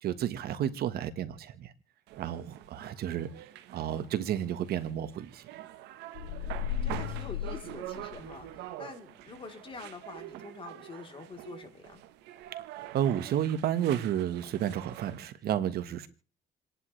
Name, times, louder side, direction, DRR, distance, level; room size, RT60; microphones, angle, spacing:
voice 1, 0.0-1.7 2.2-3.3 3.7-5.4 12.7-16.1, right 10 dB, 65° right, 1.5 m, -31 dB
sound 1, 2.1-15.3, right 13 dB, 90° right, 1.2 m, -45 dB
sound 2, 6.1-8.6, left 10 dB, 85° left, 1.5 m, -35 dB
voice 2, 6.2-12.0, left 4 dB, 30° left, 3.4 m, -46 dB
29.0 x 11.0 x 3.3 m
cardioid pair, 110°, 17 cm